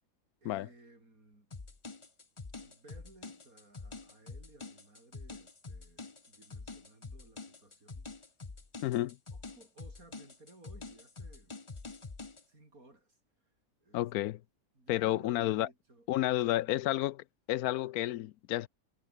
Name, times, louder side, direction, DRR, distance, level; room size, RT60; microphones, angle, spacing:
voice 1, 0.4-1.5 2.6-8.1 9.3-11.6 12.4-14.1 14.7-16.9, right 2 dB, 70° right, 6.6 m, -59 dB
sound 1, 1.5-12.4, left 3 dB, 20° left, 1.1 m, -46 dB
voice 2, 8.8-9.2 13.9-14.4 14.9-15.7 16.1-17.1 17.5-18.7, left 15 dB, 80° left, 1.1 m, -31 dB
omnidirectional pair, 1.6 m